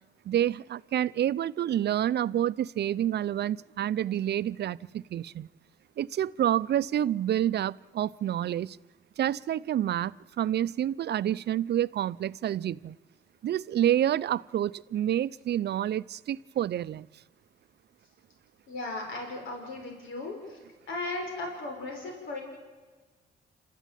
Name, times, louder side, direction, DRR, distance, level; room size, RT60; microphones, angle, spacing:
voice 1, 0.3-5.5 6.0-8.8 9.2-13.0 13.4-17.1, right 11 dB, 60° right, 0.6 m, -28 dB
voice 2, 18.7-20.6 20.9-22.4, left 2 dB, 80° left, 5.8 m, -36 dB
28.5 x 13.5 x 9.1 m
cardioid pair, 90°, 20 cm